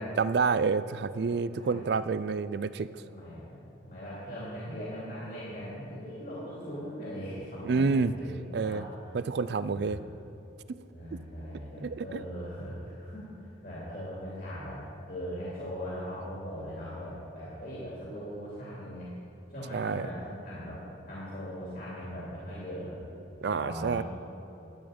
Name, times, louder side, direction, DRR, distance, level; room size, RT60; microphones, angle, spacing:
voice 1, 0.2-3.0 7.6-8.1 8.5-8.8 9.1-10.0 11.8-12.2 19.7-20.1 23.4-24.0, right 5 dB, 60° right, 15 dB, 0.3 m, -28 dB
voice 2, 1.1-1.9 3.1-7.9 8.1-9.1 9.6-10.0 10.9-19.1 19.5-23.0 23.6-24.0, equal, 45° left, -8 dB, 2.7 m, -40 dB
12.0 x 9.4 x 5.2 m, 3.0 s
head